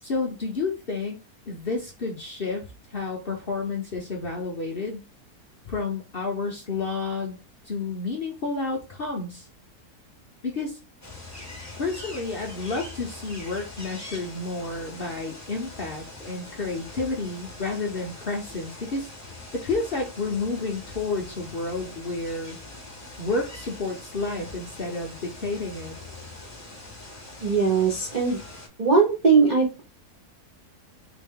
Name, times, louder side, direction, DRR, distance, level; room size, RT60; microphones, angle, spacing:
voice 1, 0.0-1.2 1.5-5.1 5.7-7.4 7.6-9.5 10.4-10.8 11.8-19.1 19.5-22.6 23.2-26.0, left 3 dB, 45° left, 0 dB, 0.7 m, -30 dB
sound 1, 11.0-28.7, left 2 dB, 10° left, 1.1 m, -43 dB
voice 2, 27.4-28.4 28.8-29.8, right 5 dB, 45° right, -3 dB, 0.6 m, -20 dB
4.1 x 2.6 x 3.6 m, 0.30 s
omnidirectional pair, 1.8 m